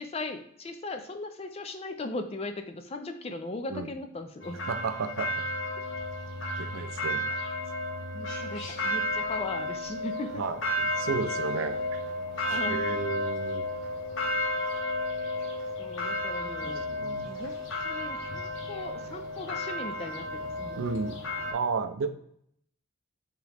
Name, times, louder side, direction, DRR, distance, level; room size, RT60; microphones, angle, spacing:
voice 1, 0.0-4.6 8.1-10.4 12.5-12.8 15.8-16.9 17.2-17.6 17.8-20.9, left 2 dB, 30° left, 7 dB, 0.4 m, -38 dB
sound 1, 4.4-21.5, left 1 dB, 65° left, 0.9 m, -32 dB
voice 2, 4.7-5.4 6.6-7.3 10.4-11.8 12.7-13.6 16.6-17.3 20.8-21.2 21.5-22.1, right 4 dB, 75° right, 9 dB, 0.4 m, -33 dB
3.7 x 3.0 x 3.3 m, 0.70 s
head